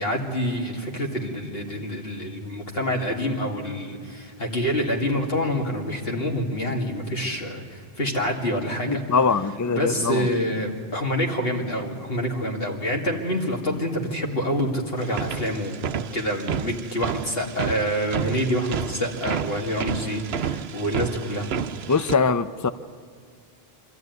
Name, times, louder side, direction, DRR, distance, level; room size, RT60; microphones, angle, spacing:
voice 1, 0.0-9.0 9.7-15.8 16.1-21.5, equal, 70° left, 1 dB, 2.6 m, -27 dB
voice 2, 8.9-10.3 21.9-22.7, left 5 dB, 30° left, 13 dB, 0.4 m, -22 dB
sound 1, 15.0-22.2, right 8 dB, 80° right, 0.9 m, -31 dB
25.0 x 13.5 x 9.4 m, 2.2 s
omnidirectional pair, 1.0 m